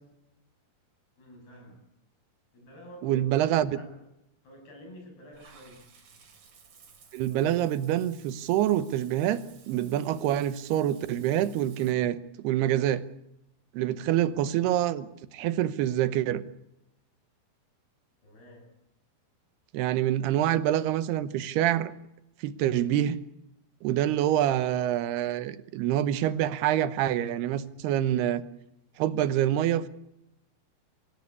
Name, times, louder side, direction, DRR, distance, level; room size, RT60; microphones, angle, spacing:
voice 1, 1.2-1.8 2.5-3.9 4.4-5.8 14.1-14.3 18.2-18.7, equal, 80° left, 2 dB, 9.0 m, -49 dB
voice 2, 3.0-3.8 7.1-13.0 13.7-16.4 19.7-21.9 22.4-23.2 23.8-28.4 29.0-29.9, right 12 dB, 90° right, 14 dB, 3.0 m, -26 dB
Water / Bathtub (filling or washing), 5.3-11.9, right 6 dB, 60° right, 5.1 m, -56 dB
25.0 x 16.5 x 8.5 m, 0.86 s
omnidirectional pair, 4.5 m